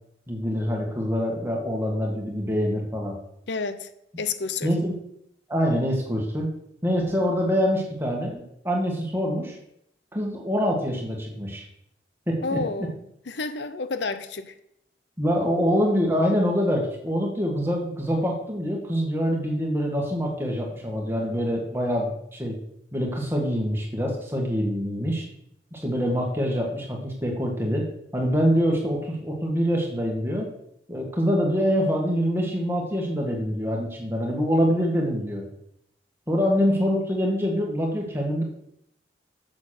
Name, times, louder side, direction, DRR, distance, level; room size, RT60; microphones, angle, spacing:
voice 1, 0.3-3.2 4.6-5.0 5.5-6.5 6.8-9.6 10.1-11.7 12.3-12.6 15.2-22.6 22.9-25.2 25.7-27.9 28.1-30.5 30.9-35.4 36.3-38.4, equal, 15° right, 2.0 m, -25 dB
voice 2, 3.5-3.9 4.2-4.7 12.4-13.0 13.3-14.5, left 4 dB, 75° left, 0.7 m, -30 dB
7.8 x 7.5 x 6.6 m
head